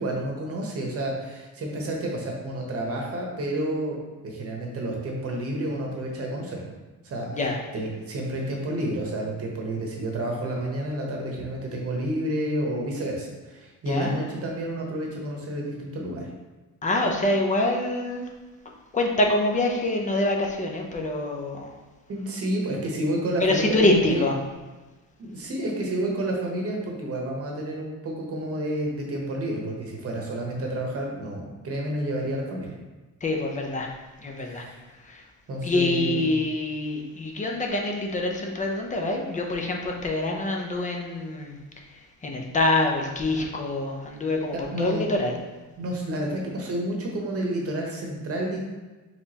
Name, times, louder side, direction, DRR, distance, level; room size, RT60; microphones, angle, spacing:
voice 1, 0.0-4.0 4.2-6.6 7.0-7.4 7.7-16.3 22.1-24.2 25.2-32.7 34.4-34.8 35.5-36.3 44.5-45.0 45.8-48.6, right 1 dB, 40° right, -1 dB, 1.0 m, -30 dB
voice 2, 16.8-18.3 18.9-21.7 23.4-24.4 33.2-33.9 34.2-34.6 35.0-35.2 35.6-41.5 42.2-45.4, left 2 dB, 20° left, 1 dB, 0.5 m, -25 dB
4.9 x 3.4 x 2.8 m, 1.2 s
cardioid pair, 155°, 34 cm